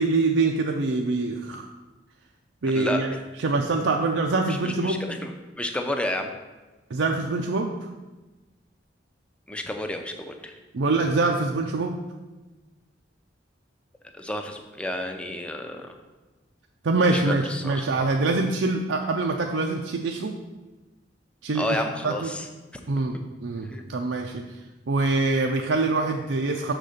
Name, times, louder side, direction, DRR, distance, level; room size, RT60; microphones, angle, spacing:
voice 1, 0.0-1.7 2.6-3.1 3.4-5.0 6.9-7.7 10.7-12.0 16.8-20.3 21.4-22.3 22.9-24.4 24.9-26.7, right 3 dB, 85° right, 2 dB, 0.5 m, -24 dB
voice 2, 4.5-5.3 5.6-6.3 9.5-10.5 14.1-15.9 17.1-17.9 21.5-22.5 23.7-23.8, left 1 dB, 5° left, 4 dB, 0.6 m, -31 dB
6.5 x 4.1 x 6.4 m, 1.2 s
head